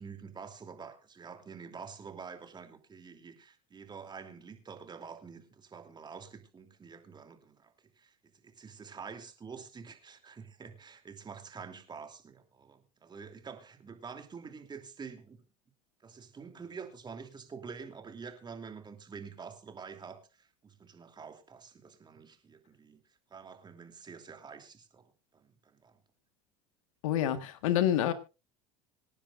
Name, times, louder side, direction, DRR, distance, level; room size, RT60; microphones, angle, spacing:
voice 1, 0.0-8.1 8.4-15.4 16.0-23.0 23.3-26.0, right 5 dB, 25° right, 2.9 m, -47 dB
voice 2, 27.0-28.1, left 11 dB, 75° left, 1.6 m, -27 dB
26.0 x 10.0 x 2.5 m
hypercardioid pair, 85°, 17 cm